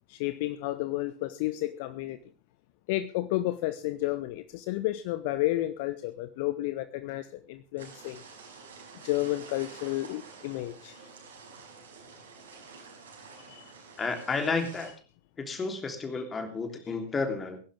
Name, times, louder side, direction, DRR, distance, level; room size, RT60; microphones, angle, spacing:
voice 1, 0.1-2.2 2.9-8.2 9.0-11.0 13.5-13.7, left 16 dB, 50° left, 0.8 m, -31 dB
sound 1, 7.8-14.9, right 4 dB, 65° right, 5.5 m, -49 dB
voice 2, 14.0-14.9 15.4-17.6, left 4 dB, 20° left, 3.3 m, -31 dB
21.5 x 11.5 x 3.5 m
figure-of-eight pair, 90°, 0 cm